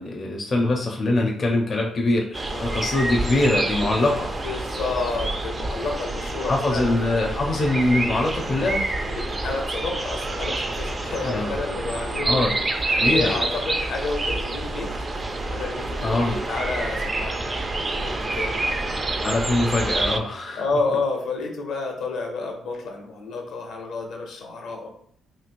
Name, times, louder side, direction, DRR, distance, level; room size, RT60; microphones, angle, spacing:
voice 1, 0.0-4.3 6.5-8.9 11.2-11.7 12.2-12.5 13.0-13.5 16.0-16.4 18.9-20.7, left 2 dB, 45° left, 0 dB, 0.5 m, -23 dB
sound 1, 2.3-20.2, right 2 dB, 30° right, 0.4 m, -27 dB
voice 2, 2.5-2.8 4.4-6.8 9.1-12.4 12.9-14.9 15.5-17.6 17.8-18.7 20.6-24.9, left 3 dB, 80° left, 1 dB, 0.7 m, -30 dB
3.0 x 2.8 x 2.5 m, 0.66 s
cardioid pair, 90°, 0 cm